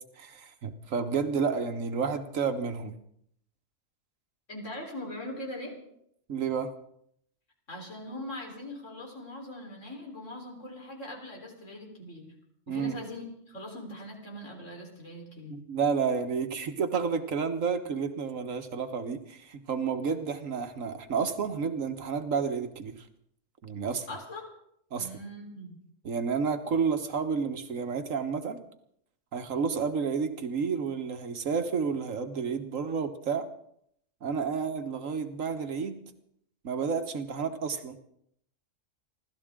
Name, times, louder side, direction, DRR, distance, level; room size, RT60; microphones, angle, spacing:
voice 1, 0.2-2.9 6.3-6.7 12.7-13.0 15.5-22.9 23.6-24.1 24.9-25.1 26.0-28.6 29.3-33.5 34.2-35.9 36.6-38.0, right 5 dB, 85° right, 8 dB, 1.7 m, -30 dB
voice 2, 4.5-5.7 7.7-12.3 12.7-15.6 24.1-24.5 25.0-25.8, left 1 dB, 70° left, 0 dB, 4.5 m, -41 dB
28.5 x 13.0 x 3.7 m, 0.72 s
omnidirectional pair, 1.3 m